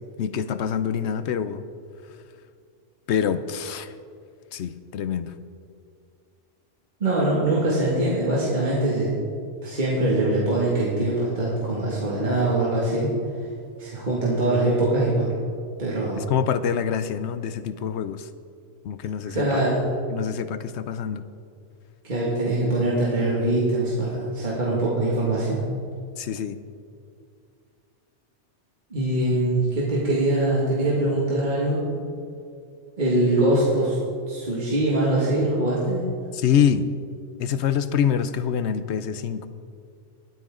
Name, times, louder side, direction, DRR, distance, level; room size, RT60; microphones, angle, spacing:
voice 1, 0.2-1.6 3.1-3.9 4.5-5.3 16.3-18.3 18.8-19.6 20.1-21.2 26.2-26.6 36.3-36.9 37.4-39.5, left 8 dB, 70° left, 12 dB, 0.9 m, -25 dB
voice 2, 7.0-9.2 9.6-13.1 13.8-15.3 15.8-16.3 19.3-19.8 22.0-25.6 28.9-31.8 33.0-34.0 34.3-36.1, right 1 dB, 40° right, -6 dB, 2.2 m, -23 dB
20.5 x 9.1 x 3.8 m, 2.3 s
omnidirectional pair, 1.2 m